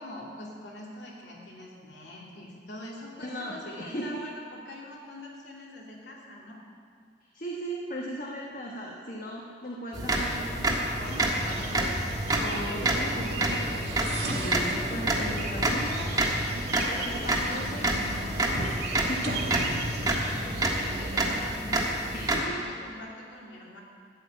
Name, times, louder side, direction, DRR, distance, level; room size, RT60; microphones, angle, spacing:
voice 1, 0.0-6.6 20.0-22.1 22.4-23.8, left 1 dB, 70° left, -3 dB, 2.6 m, -44 dB
voice 2, 3.2-4.2 7.3-14.0 14.3-16.1 16.8-19.4 22.1-22.6, equal, 45° left, -2 dB, 1.1 m, -37 dB
sound 1, 9.9-22.4, right 1 dB, 20° right, 1.4 m, -29 dB
sound 2, 11.0-21.4, right 2 dB, 65° right, 1.7 m, -35 dB
13.0 x 6.5 x 8.9 m, 2.3 s
head